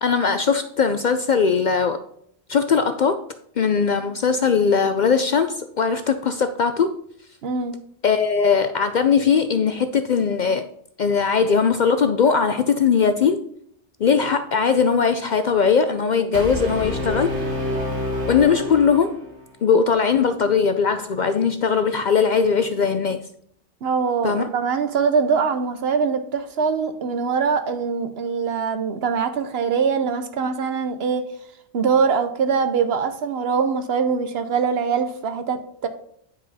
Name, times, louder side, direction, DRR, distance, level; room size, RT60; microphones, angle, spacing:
voice 1, 0.0-2.0 2.5-3.2 3.6-6.9 8.0-10.7 11.0-13.4 14.0-17.4 18.3-19.2 19.6-23.2 24.2-24.5, left 6 dB, 55° left, 9 dB, 0.5 m, -20 dB
voice 2, 7.4-7.8 23.8-31.2 31.7-35.9, right 5 dB, 65° right, 9 dB, 1.0 m, -23 dB
Brass instrument, 16.3-19.4, left 1 dB, 85° right, 1.9 m, -27 dB
9.7 x 5.0 x 4.1 m, 0.68 s
omnidirectional pair, 1.1 m